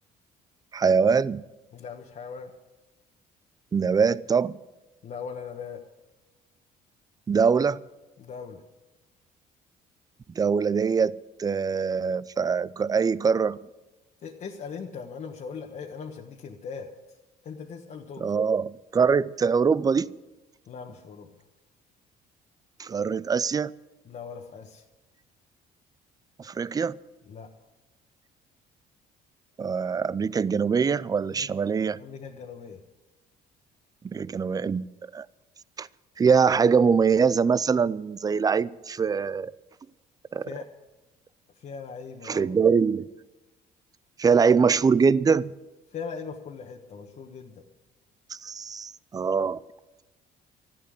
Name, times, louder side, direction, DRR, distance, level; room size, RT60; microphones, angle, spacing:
voice 1, 0.7-1.4 3.7-4.6 7.3-7.8 10.4-13.6 18.2-20.1 22.8-23.7 26.4-27.0 29.6-32.0 34.0-34.9 35.1-35.3 35.8-35.9 36.2-39.5 40.3-40.5 42.3-43.1 44.2-45.5 48.3-49.6, right 5 dB, 20° right, 0.4 m, -23 dB
voice 2, 1.7-2.5 5.0-5.8 8.2-8.6 14.2-16.9 17.4-18.3 20.7-21.3 24.0-24.8 27.3-27.5 31.3-31.5 32.0-32.8 40.5-40.7 41.6-42.5 45.9-47.6, left 6 dB, 50° left, 1.4 m, -39 dB
13.5 x 11.5 x 7.9 m
cardioid pair, 110°, 17 cm